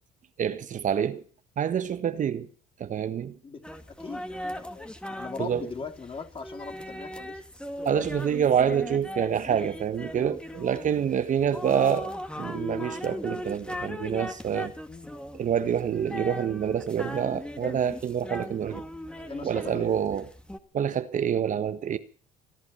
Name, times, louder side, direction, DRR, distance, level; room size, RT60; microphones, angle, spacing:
voice 1, 0.4-1.2 1.6-2.5 2.8-3.4 5.4-5.7 7.8-14.7 15.3-18.8 19.4-20.3 20.7-22.0, right 8 dB, 50° right, 1.4 m, -27 dB
voice 2, 3.4-7.4 10.8-11.1 14.9-15.1 19.1-20.0, left 4 dB, 30° left, 3.4 m, -40 dB
sound 1, 3.6-20.6, left 1 dB, 5° left, 2.3 m, -38 dB
23.5 x 11.0 x 5.7 m
supercardioid pair, 75°, 17 cm